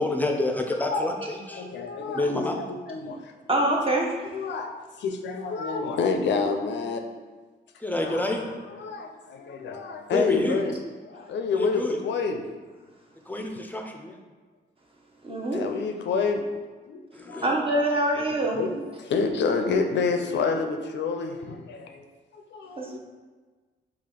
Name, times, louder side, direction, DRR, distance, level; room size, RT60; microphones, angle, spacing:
voice 1, 0.0-1.7 2.1-2.6 3.0-3.1 7.8-8.5 10.1-10.6 11.5-12.0 13.3-14.2 17.1-17.5, left 2 dB, 10° left, 2 dB, 0.5 m, -28 dB
voice 2, 1.5-2.5 2.9-3.3 4.3-7.0 8.0-8.4 8.7-10.8 11.1-12.4 15.5-16.4 16.9-17.0 17.3-17.5 18.3-22.1 22.3-23.0, left 4 dB, 70° left, 4 dB, 0.4 m, -28 dB
voice 3, 3.5-4.2 15.2-15.6 17.4-18.6 22.8-23.0, right 1 dB, 30° right, -1 dB, 0.8 m, -24 dB
3.3 x 2.4 x 3.8 m, 1.3 s
cardioid pair, 70°, 19 cm